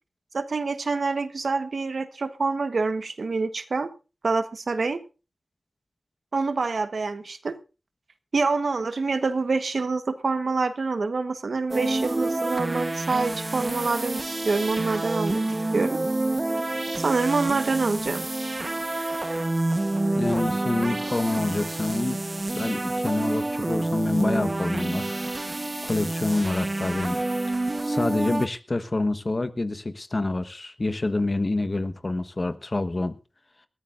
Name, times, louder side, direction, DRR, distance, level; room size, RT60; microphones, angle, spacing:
voice 1, 0.3-3.9 4.2-5.0 6.3-7.6 8.3-15.4 15.7-16.0 17.0-18.2, right 4 dB, 75° right, 1.2 m, -26 dB
sound 1, 11.7-28.5, right 2 dB, 35° right, 1.1 m, -28 dB
voice 2, 20.2-22.2 22.5-25.2 25.8-27.2 27.5-27.6 27.8-33.2, left 2 dB, 40° left, 1.2 m, -27 dB
21.0 x 14.5 x 2.6 m
wide cardioid pair, 60°, 0 cm